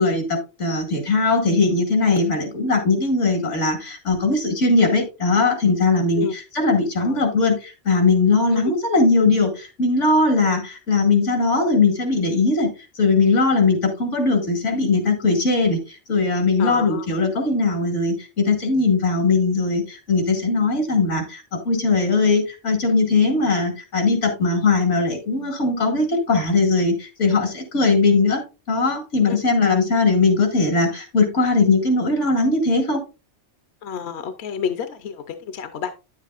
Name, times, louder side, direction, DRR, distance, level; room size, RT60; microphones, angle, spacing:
voice 1, 0.0-12.7 12.9-28.4 28.7-33.0, left 3 dB, 85° left, 5 dB, 2.2 m, -20 dB
voice 2, 16.6-17.1 29.3-29.4 33.8-35.9, left 7 dB, 65° left, 9 dB, 0.9 m, -29 dB
9.7 x 7.4 x 2.4 m, 0.29 s
omnidirectional pair, 1.2 m